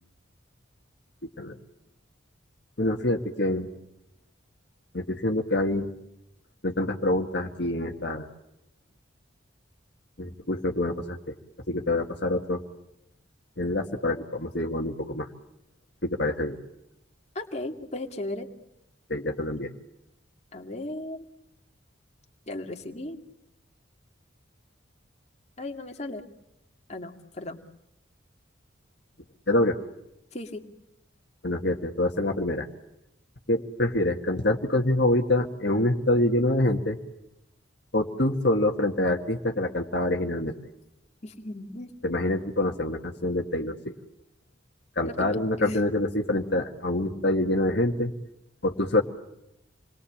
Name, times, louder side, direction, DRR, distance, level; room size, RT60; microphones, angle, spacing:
voice 1, 2.8-3.7 4.9-5.9 6.6-8.3 10.2-11.3 11.7-12.6 13.6-15.3 16.0-16.6 19.1-19.7 29.5-29.8 31.4-32.7 33.5-37.0 37.9-40.5 42.0-43.9 45.0-48.1 48.6-49.0, left 1 dB, 55° left, 2 dB, 1.9 m, -26 dB
voice 2, 17.3-18.5 20.5-21.2 22.5-23.2 25.6-26.2 26.9-27.6 30.3-30.6 41.2-41.9 45.0-45.8, left 2 dB, 35° left, 2 dB, 2.4 m, -36 dB
28.5 x 22.0 x 8.7 m, 0.85 s
head